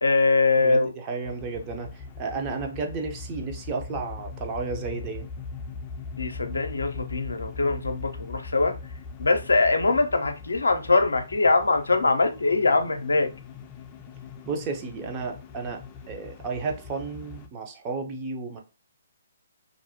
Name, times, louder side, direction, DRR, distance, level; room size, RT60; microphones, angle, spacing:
voice 1, 0.0-0.9 6.2-8.7 9.2-13.3, left 3 dB, 80° left, 0.5 m, -22 dB
voice 2, 0.6-5.2 14.5-18.6, right 4 dB, 25° right, 0.5 m, -33 dB
sound 1, 1.2-17.5, left 4 dB, 25° left, 0.4 m, -40 dB
2.5 x 2.0 x 2.8 m
figure-of-eight pair, 140°, 0 cm